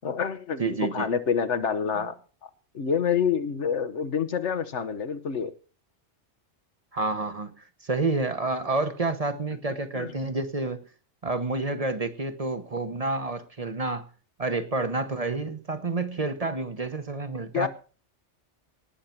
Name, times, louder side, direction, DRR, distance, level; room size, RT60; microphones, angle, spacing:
voice 1, 0.0-2.1 2.7-5.5 9.9-10.1 17.5-17.7, left 7 dB, 80° left, 10 dB, 1.4 m, -27 dB
voice 2, 0.6-1.1 6.9-10.9 11.2-14.1 14.4-17.7, right 3 dB, 35° right, 9 dB, 1.0 m, -29 dB
18.5 x 6.6 x 5.9 m, 0.38 s
omnidirectional pair, 1.2 m